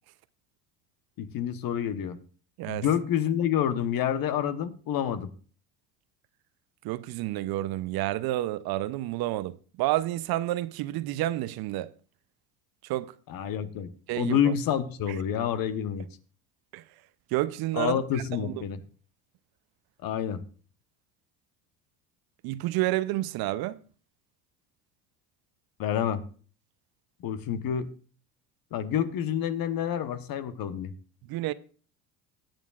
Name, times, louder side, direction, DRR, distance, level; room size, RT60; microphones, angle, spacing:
voice 1, 1.2-2.2 2.7-5.3 13.3-16.1 17.7-18.8 20.0-20.4 25.8-26.2 27.2-27.9 28.7-30.9, left 9 dB, 50° left, 1.0 m, -28 dB
voice 2, 6.8-11.9 12.8-13.1 14.1-14.5 16.7-16.8 17.3-18.0 18.4-18.5 22.4-23.8 31.3-31.5, right 15 dB, 55° right, 0.6 m, -29 dB
16.5 x 9.0 x 2.4 m
hypercardioid pair, 80°, 45 cm